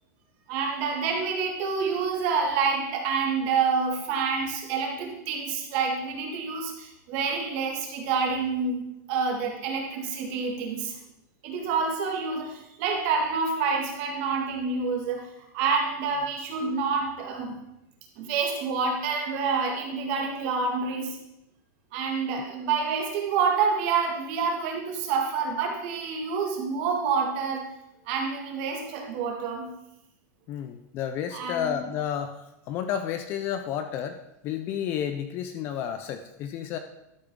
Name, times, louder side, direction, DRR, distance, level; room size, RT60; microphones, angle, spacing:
voice 1, 0.5-11.0 11.4-15.3 15.5-17.6 18.2-21.2 21.9-27.7 28.1-29.7 31.3-31.8, right 5 dB, 35° right, 1 dB, 1.9 m, -28 dB
voice 2, 30.5-36.8, left 9 dB, 25° left, 8 dB, 0.4 m, -31 dB
12.5 x 7.9 x 3.7 m, 0.86 s
supercardioid pair, 180°, 10 cm